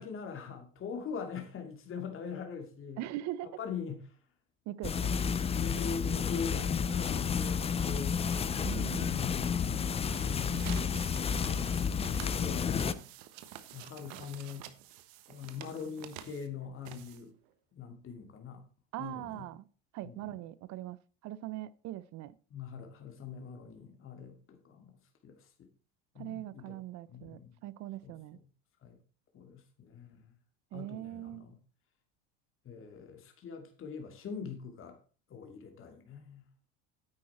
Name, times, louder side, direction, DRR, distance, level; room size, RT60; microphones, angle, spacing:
voice 1, 0.0-3.0 3.4-4.2 5.4-8.2 8.9-9.6 10.2-11.0 11.3-11.7 12.2-13.1 13.7-14.7 15.3-17.3 17.7-18.6 19.0-19.5 20.0-20.3 22.5-25.7 26.1-26.7 27.1-27.6 28.0-28.1 28.8-29.0 29.3-30.3 30.7-31.6 32.6-35.0 35.3-36.4, left 6 dB, 35° left, 2.5 m, -42 dB
voice 2, 3.0-3.5 4.7-5.1 8.6-9.2 18.9-19.6 19.9-21.0 21.2-22.3 26.2-28.4 30.7-31.4, right 14 dB, 50° right, 0.7 m, -41 dB
sound 1, 4.8-12.9, left 6 dB, 15° left, 0.5 m, -31 dB
sound 2, 10.1-17.5, right 12 dB, 65° right, 1.4 m, -49 dB
9.9 x 8.5 x 4.3 m
supercardioid pair, 110°, 36 cm